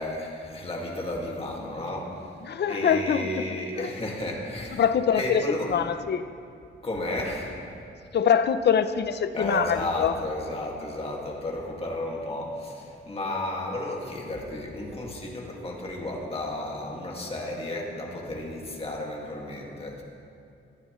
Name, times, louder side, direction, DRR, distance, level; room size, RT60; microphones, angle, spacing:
voice 1, 0.0-2.2 2.7-4.9 5.1-5.8 6.8-7.6 9.3-20.0, left 1 dB, 30° left, -1 dB, 2.0 m, -33 dB
voice 2, 2.4-3.5 3.8-3.9 4.8-5.4 5.7-6.3 8.1-10.1, left 8 dB, 55° left, 12 dB, 0.6 m, -24 dB
18.5 x 14.0 x 3.1 m, 2.5 s
wide cardioid pair, 160°, 21 cm